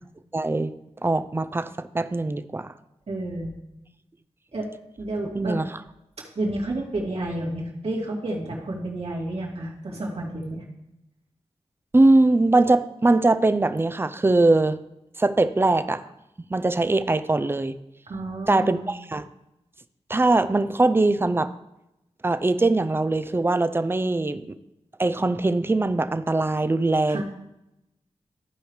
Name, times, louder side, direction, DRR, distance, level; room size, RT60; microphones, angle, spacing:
voice 1, 0.3-0.7 1.0-2.7 5.3-5.8 11.9-14.8 15.2-16.0 16.5-17.8 18.5-19.3 20.1-21.5 22.2-24.5 25.0-27.2, right 2 dB, 20° right, 12 dB, 0.4 m, -21 dB
voice 2, 3.1-3.5 4.5-4.7 5.0-5.6 6.4-10.6 18.1-18.9 27.1-27.2, right 1 dB, 70° right, -3 dB, 2.3 m, -30 dB
14.5 x 5.0 x 3.2 m, 0.90 s
wide cardioid pair, 75°, 11 cm